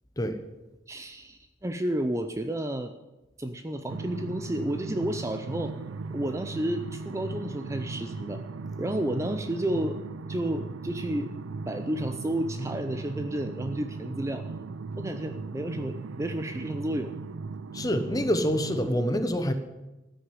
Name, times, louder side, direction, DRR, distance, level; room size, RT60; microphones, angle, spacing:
voice 1, 0.9-2.9 3.4-5.7 6.1-8.4 8.8-10.0 10.3-11.3 11.7-14.5 15.0-17.1, right 1 dB, 15° right, 8 dB, 0.5 m, -31 dB
sound 1, 3.9-18.9, right 4 dB, 85° right, 0.5 m, -37 dB
voice 2, 17.7-19.5, equal, 20° left, 9 dB, 1.0 m, -26 dB
14.0 x 6.4 x 9.7 m, 1.1 s
head